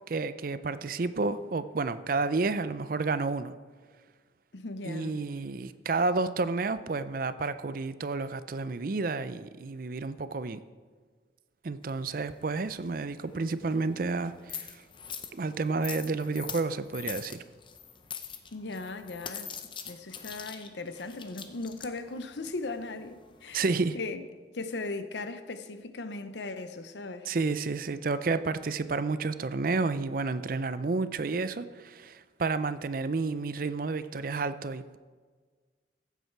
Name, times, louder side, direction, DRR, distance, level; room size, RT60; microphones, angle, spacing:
voice 1, 0.1-3.5 4.8-10.6 11.6-14.8 15.3-17.4 23.5-24.0 27.3-35.0, right 3 dB, 50° right, 0.5 m, -30 dB
voice 2, 4.5-5.2 18.5-19.5 19.9-23.6 23.9-24.2 24.5-27.3, left 3 dB, 75° left, 0.8 m, -38 dB
sound 1, 11.8-23.9, left 7 dB, 25° left, 0.7 m, -44 dB
15.0 x 8.2 x 4.6 m
head